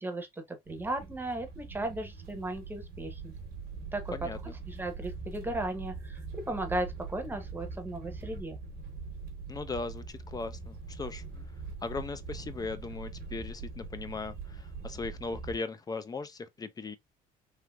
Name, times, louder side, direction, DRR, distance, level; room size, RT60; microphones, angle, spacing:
voice 1, 0.0-3.3 3.9-4.1 4.7-6.2 6.5-8.6, right 1 dB, 10° right, 0.8 m, -36 dB
sound 1, 0.6-15.6, right 4 dB, 65° right, 1.1 m, -42 dB
voice 2, 4.1-4.5 9.5-11.2 11.8-17.0, left 4 dB, 20° left, 0.4 m, -38 dB
3.2 x 2.8 x 2.3 m
cardioid pair, 110°, 17 cm